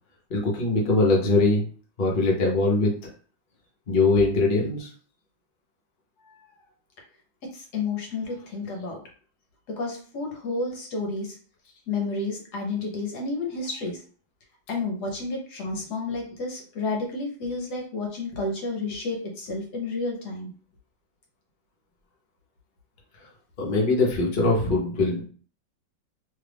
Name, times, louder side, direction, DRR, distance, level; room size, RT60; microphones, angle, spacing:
voice 1, 0.3-1.7 2.0-2.9 3.9-4.9 23.6-25.2, left 3 dB, 40° left, -3 dB, 0.7 m, -22 dB
voice 2, 7.4-9.0 9.7-11.4 11.9-14.0 14.7-20.5, left 3 dB, 65° left, 0 dB, 1.3 m, -31 dB
3.1 x 2.4 x 3.4 m, 0.42 s
omnidirectional pair, 2.0 m